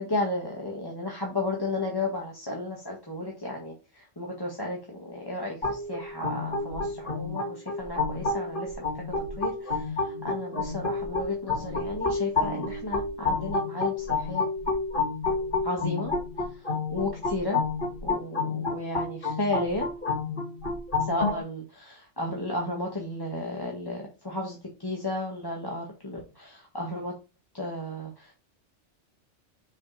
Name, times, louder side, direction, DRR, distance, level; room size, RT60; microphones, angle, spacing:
voice 1, 0.0-14.4 15.6-16.1 16.9-17.6 18.0-19.9 21.1-27.1 27.5-28.3, left 2 dB, 20° left, -2 dB, 1.7 m, -33 dB
sound 1, 5.6-21.4, left 3 dB, 45° left, 2.1 m, -30 dB
6.8 x 5.0 x 4.2 m, 0.29 s
omnidirectional pair, 1.2 m